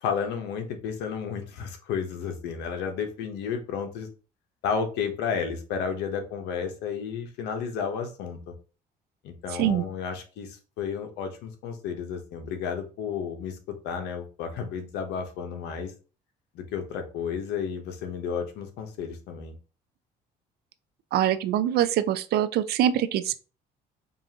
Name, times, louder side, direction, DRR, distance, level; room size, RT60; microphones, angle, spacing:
voice 1, 0.0-4.1 4.6-8.5 9.2-15.9 16.5-19.5, left 6 dB, 90° left, 0.9 m, -32 dB
voice 2, 21.1-23.4, right 11 dB, 70° right, 0.5 m, -24 dB
5.3 x 2.5 x 2.8 m
cardioid pair, 110°, 17 cm